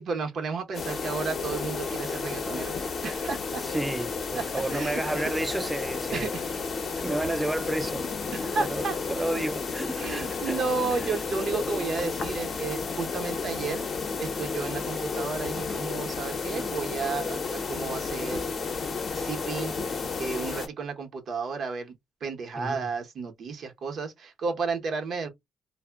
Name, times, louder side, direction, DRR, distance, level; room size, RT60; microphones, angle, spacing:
voice 1, 0.0-3.6 4.3-4.4 4.7-5.3 6.1-6.5 8.3-9.0 9.9-13.9 14.2-18.5 19.1-21.9 22.2-25.3, right 4 dB, 60° right, 0.7 m, -32 dB
sound 1, 0.7-20.7, left 4 dB, 45° left, 0.6 m, -32 dB
voice 2, 3.6-6.3 7.0-8.1 8.6-8.8 9.1-10.9 22.6-22.9, right 1 dB, 10° right, 0.3 m, -31 dB
2.1 x 2.0 x 3.4 m
cardioid pair, 90°, 0 cm